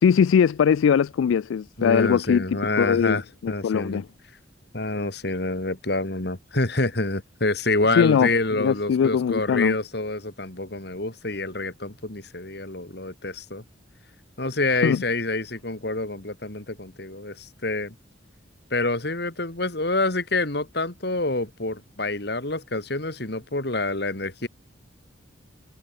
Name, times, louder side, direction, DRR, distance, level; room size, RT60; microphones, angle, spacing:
voice 1, 0.0-4.0 7.9-8.3 8.6-9.8 14.8-15.0, left 7 dB, 80° left, 0.3 m, -21 dB
voice 2, 1.8-4.0 4.7-13.6 14.4-17.9 18.7-24.5, left 2 dB, 55° left, 2.5 m, -27 dB
head